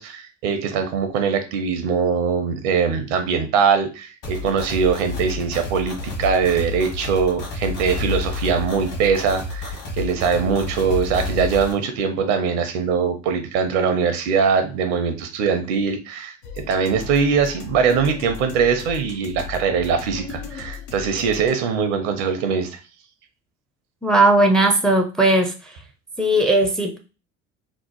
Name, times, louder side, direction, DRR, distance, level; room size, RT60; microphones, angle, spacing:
voice 1, 0.0-22.8, right 6 dB, 70° right, 7 dB, 0.7 m, -22 dB
sound 1, 4.2-11.7, left 3 dB, 55° left, 1.3 m, -29 dB
sound 2, 16.4-21.5, left 6 dB, 75° left, 0.6 m, -36 dB
voice 2, 24.0-25.7 26.2-27.0, right 2 dB, ahead, 4 dB, 0.4 m, -17 dB
3.0 x 2.0 x 2.9 m, 0.32 s
hypercardioid pair, 60°, 37 cm